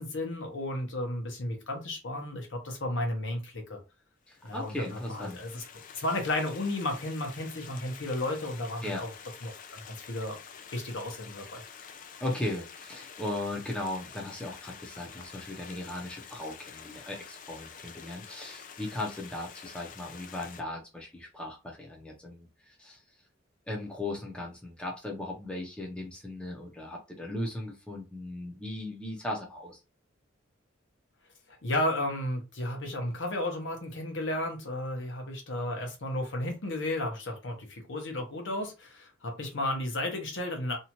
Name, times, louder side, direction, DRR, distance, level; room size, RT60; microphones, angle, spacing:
voice 1, 0.0-3.8 4.4-5.6 5.9-9.1 9.4-10.4 10.7-11.6 31.5-40.8, left 1 dB, 65° left, 3 dB, 0.9 m, -33 dB
Stream, 4.3-20.6, left 7 dB, 40° left, 0.4 m, -48 dB
voice 2, 4.3-5.4 8.8-9.0 12.2-22.5 22.8-23.0 23.7-29.8, left 1 dB, 5° left, -2 dB, 0.6 m, -37 dB
2.8 x 2.4 x 2.9 m, 0.27 s
head